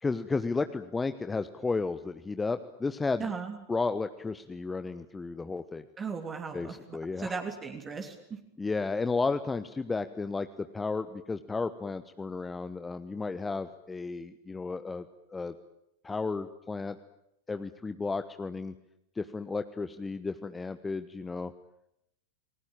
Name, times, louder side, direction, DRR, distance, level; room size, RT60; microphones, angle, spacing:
voice 1, 0.0-3.3 3.7-5.8 6.5-7.3 8.6-15.5 16.0-17.0 17.5-18.7 19.2-21.5, left 4 dB, 10° left, 11 dB, 1.1 m, -33 dB
voice 2, 3.2-3.6 6.0-8.4, right 5 dB, 20° right, 4 dB, 3.2 m, -37 dB
29.5 x 20.5 x 9.0 m, 0.81 s
figure-of-eight pair, 90°, 0 cm